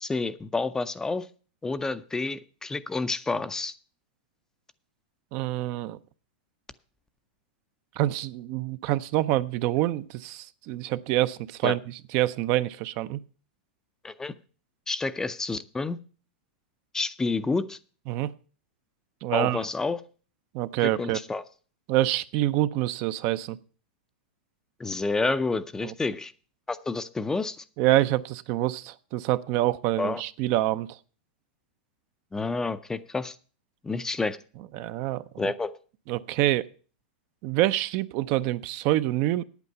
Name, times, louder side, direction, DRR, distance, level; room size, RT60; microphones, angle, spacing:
voice 1, 0.0-1.3 1.6-3.7 11.6-11.8 14.0-14.3 14.9-16.0 16.9-17.8 19.3-20.0 20.8-21.4 24.8-26.3 26.7-27.6 30.0-30.2 32.3-33.4 33.8-34.4 35.4-35.7, left 3 dB, 10° left, 13 dB, 0.5 m, -29 dB
voice 2, 5.3-6.0 8.0-13.2 18.1-18.3 19.2-19.6 20.5-21.2 21.9-23.6 25.8-25.9 27.8-31.0 34.7-35.5 36.1-36.7 37.4-39.4, right 15 dB, 45° right, 14 dB, 0.5 m, -26 dB
8.9 x 8.3 x 6.6 m, 0.39 s
hypercardioid pair, 130°, 6 cm